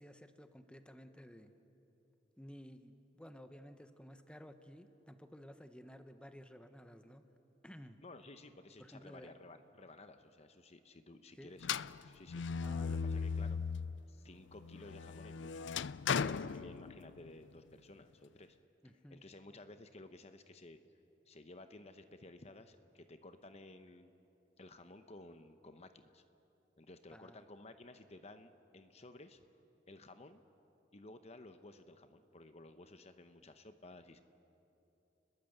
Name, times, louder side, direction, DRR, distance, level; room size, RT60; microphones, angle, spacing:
voice 1, 0.0-1.5 2.4-7.2 7.6-8.0 8.8-9.3 11.4-11.5 12.6-13.7 16.2-16.7 18.8-19.2 27.1-27.4, equal, 5° left, 8 dB, 1.1 m, -54 dB
voice 2, 8.0-11.8 12.0-13.6 14.1-15.7 16.1-18.6 19.1-20.8 21.3-24.1 24.6-26.2 26.8-29.4 29.9-30.4 30.9-34.2, left 2 dB, 35° left, 9 dB, 0.9 m, -55 dB
sound 1, 11.6-14.0 14.5-17.3, left 6 dB, 80° left, 0.5 m, -38 dB
28.5 x 21.0 x 8.0 m, 2.9 s
head